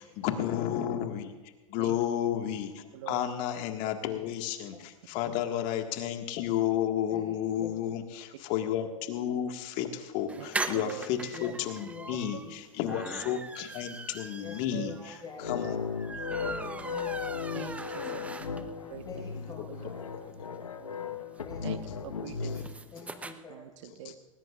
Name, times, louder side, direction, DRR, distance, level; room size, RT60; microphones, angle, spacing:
voice 1, 0.0-15.8 18.3-18.4 20.4-20.5 22.4-22.5 24.0-24.2, left 10 dB, 45° left, 5 dB, 1.8 m, -32 dB
voice 2, 2.9-3.2 5.3-5.4 10.4-10.5 10.7-11.1 12.3-12.4 14.7-14.9 17.5-18.2 18.9-19.1 19.7-19.9 21.6-22.6 23.5-24.1, right 12 dB, 60° right, 10 dB, 1.2 m, -43 dB
voice 3, 7.1-7.7 11.3-12.5 14.4-15.9 16.9-17.4 17.9-18.1 19.1-20.1 21.4-21.8 22.9-23.6, left 4 dB, 20° left, -2 dB, 5.3 m, -47 dB
sound 1, 10.3-18.9 19.3-19.4 19.6-19.7 19.9-23.3, right 2 dB, 10° right, 0.9 m, -40 dB
sound 2, 15.4-22.7, left 6 dB, 90° left, 1.3 m, -36 dB
20.0 x 19.5 x 2.5 m, 1.3 s
hypercardioid pair, 105°, 17 cm